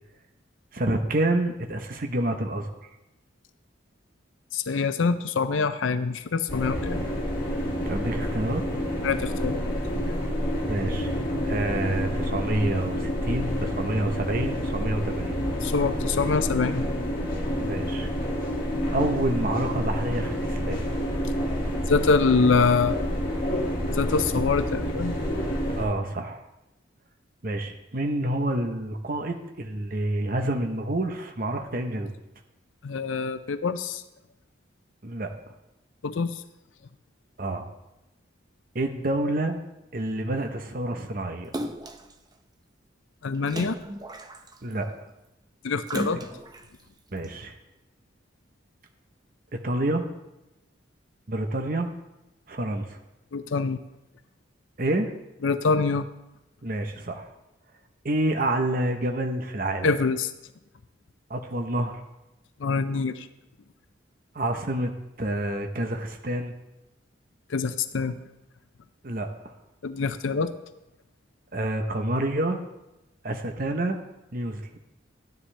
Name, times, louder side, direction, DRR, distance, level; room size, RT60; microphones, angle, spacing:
voice 1, 0.7-2.7 7.8-8.6 10.7-11.1 11.4-15.4 17.6-18.1 18.9-20.8 25.8-26.4 27.4-32.1 35.0-35.3 37.4-37.7 38.7-39.6 39.9-41.5 44.6-44.9 46.1-46.2 47.1-47.5 49.6-50.1 51.3-51.9 52.5-53.0 54.8-55.1 56.6-57.3 58.0-59.9 61.3-62.0 64.3-64.9 65.2-66.5 69.0-69.5 71.5-72.6 73.2-74.0 74.3-74.6, right 1 dB, 45° right, 5 dB, 0.9 m, -28 dB
voice 2, 4.5-7.1 9.0-9.6 15.6-16.9 21.9-23.1 23.9-25.1 32.8-34.0 36.0-36.4 43.2-43.8 45.6-46.2 53.3-53.8 55.4-56.1 59.8-60.3 62.6-63.3 67.5-68.1 69.8-70.5, left 4 dB, 80° left, 11 dB, 0.5 m, -25 dB
sound 1, 6.5-25.9, equal, 45° left, 2.2 m, -28 dB
Splash splatter, 41.5-42.1 43.5-44.7 45.9-46.7 47.2-47.3, right 1 dB, 20° right, 0.6 m, -34 dB
13.0 x 10.0 x 3.3 m, 0.93 s
head